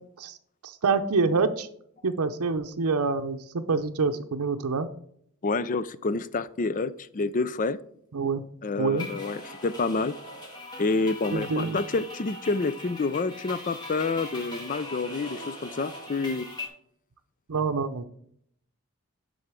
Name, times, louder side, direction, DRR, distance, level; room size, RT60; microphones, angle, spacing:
voice 1, 0.6-1.7 2.0-4.9 8.1-8.4 8.8-9.1 11.3-11.8 17.5-18.0, right 4 dB, 80° right, 6 dB, 0.6 m, -26 dB
voice 2, 5.4-7.8 8.6-10.1 10.8-16.5, left 3 dB, 35° left, 15 dB, 0.4 m, -28 dB
sound 1, 9.0-16.7, left 1 dB, 20° left, 2.1 m, -40 dB
9.7 x 3.9 x 6.1 m, 0.66 s
head